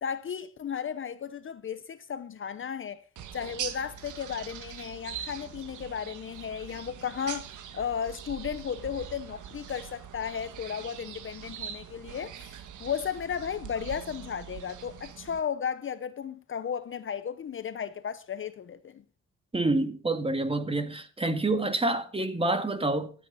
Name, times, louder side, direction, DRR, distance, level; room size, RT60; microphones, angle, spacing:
voice 1, 0.0-3.0 3.3-19.0, left 7 dB, 40° left, 0.8 m, -34 dB
sound 1, 3.2-15.4, right 9 dB, 80° right, 1.6 m, -42 dB
voice 2, 19.5-23.1, right 2 dB, 20° right, 2.0 m, -27 dB
14.0 x 8.6 x 5.6 m
cardioid pair, 90°, 30 cm